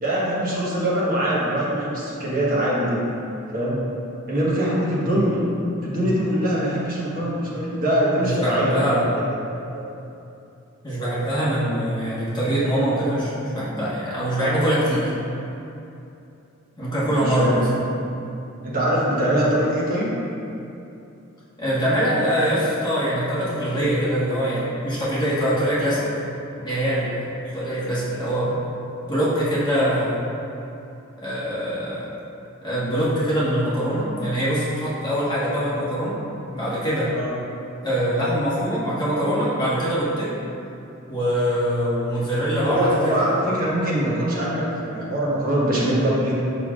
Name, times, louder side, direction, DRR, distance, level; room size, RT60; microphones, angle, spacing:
voice 1, 0.0-3.2 3.5-3.8 4.3-5.4 5.8-9.2 9.7-9.9 17.1-17.8 18.6-20.1 37.1-37.3 42.6-46.3, right 1 dB, 40° right, -7 dB, 1.3 m, -23 dB
voice 2, 8.1-9.0 10.8-15.1 16.8-17.7 21.6-26.1 26.6-28.6 29.0-30.2 31.2-32.1 32.6-36.2 36.5-37.1 37.8-40.3 41.1-43.3, equal, 20° left, -10 dB, 1.4 m, -23 dB
6.7 x 5.8 x 2.5 m, 2.8 s
head